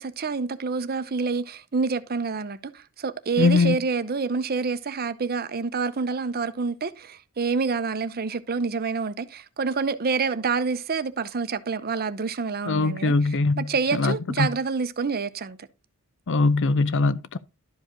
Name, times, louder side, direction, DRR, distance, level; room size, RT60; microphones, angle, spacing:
voice 1, 0.0-13.1 13.6-15.6, right 4 dB, 45° right, 0.7 m, -27 dB
voice 2, 3.4-3.8 12.7-14.5 16.3-17.4, left 3 dB, 55° left, 0.6 m, -22 dB
12.0 x 5.1 x 3.8 m
head